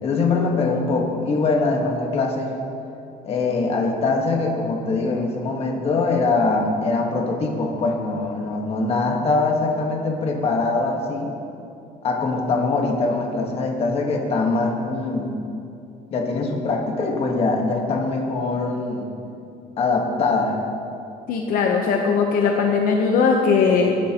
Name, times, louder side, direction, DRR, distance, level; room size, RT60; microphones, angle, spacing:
voice 1, 0.0-2.5 3.2-11.3 12.0-15.4 16.1-19.1 19.8-20.6, left 3 dB, 40° left, 1 dB, 1.4 m, -22 dB
voice 2, 21.3-24.0, left 5 dB, 65° left, 1 dB, 0.9 m, -19 dB
19.0 x 10.5 x 3.0 m, 2.7 s
cardioid pair, 170°, 16 cm